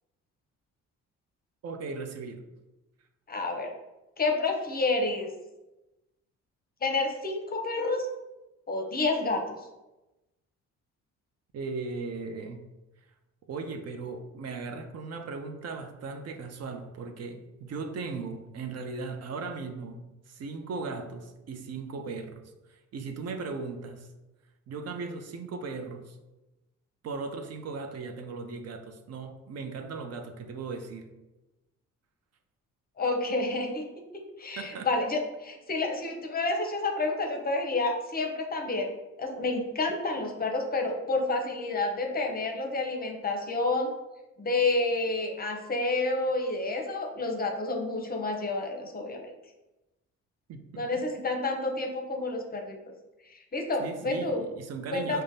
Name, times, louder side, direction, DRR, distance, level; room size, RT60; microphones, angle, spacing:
voice 1, 1.6-2.4 11.5-12.6 13.5-20.0 20.3-22.4 22.7-24.1 24.7-26.2 27.0-31.1 34.6-34.9 50.5-50.9 53.8-55.2, right 4 dB, 55° right, 6 dB, 0.5 m, -37 dB
voice 2, 3.3-3.7 4.2-5.3 6.8-8.1 8.7-9.6 33.0-33.8 34.4-38.9 39.2-43.9 44.4-49.2 50.8-52.8 53.2-54.4 54.9-55.2, left 2 dB, 30° left, 2 dB, 0.7 m, -29 dB
4.9 x 2.2 x 2.6 m, 1.0 s
cardioid pair, 90°, 30 cm